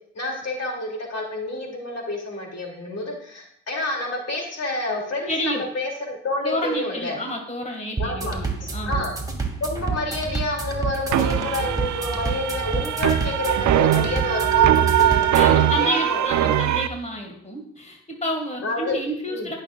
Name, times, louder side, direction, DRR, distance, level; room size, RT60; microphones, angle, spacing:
voice 1, 0.1-7.2 8.0-9.1 9.6-16.6 18.6-19.0 19.3-19.5, left 2 dB, 60° left, 0 dB, 3.0 m, -29 dB
voice 2, 5.3-5.7 6.4-9.1 15.3-19.5, equal, 25° left, 2 dB, 2.1 m, -29 dB
sound 1, 8.0-15.6, right 4 dB, 10° right, 2.4 m, -29 dB
sound 2, 11.1-16.9, right 11 dB, 80° right, 0.6 m, -21 dB
16.5 x 6.5 x 2.5 m, 0.69 s
supercardioid pair, 55°, 29 cm